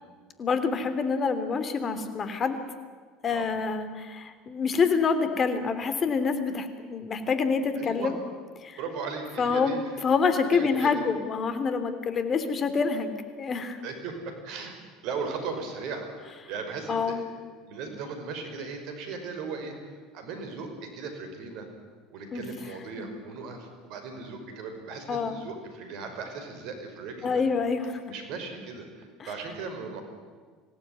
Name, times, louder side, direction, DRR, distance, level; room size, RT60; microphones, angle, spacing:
voice 1, 0.4-2.6 3.2-8.1 8.6-8.8 9.4-13.8 16.9-17.2 22.3-22.5 23.0-23.1 25.1-25.4 27.2-28.0, left 5 dB, 40° left, 10 dB, 3.2 m, -27 dB
voice 2, 7.8-8.1 8.8-9.9 10.5-10.9 13.8-14.8 15.0-17.2 17.7-21.7 22.1-27.4 28.0-30.0, right 4 dB, 65° right, 6 dB, 5.4 m, -37 dB
25.5 x 17.0 x 9.6 m, 1.5 s
hypercardioid pair, 75°, 0 cm